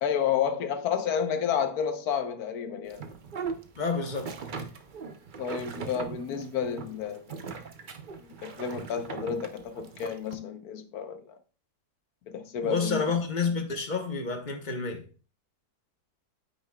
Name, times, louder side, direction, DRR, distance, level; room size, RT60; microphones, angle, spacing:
voice 1, 0.0-3.0 5.4-7.4 8.4-11.4 12.3-13.0, left 8 dB, 70° left, 1.4 m, -30 dB
sound 1, 2.9-10.4, right 5 dB, 50° right, 0.6 m, -40 dB
voice 2, 3.7-4.3 12.6-15.1, left 4 dB, 30° left, 1.2 m, -29 dB
8.8 x 8.7 x 2.3 m
omnidirectional pair, 1.7 m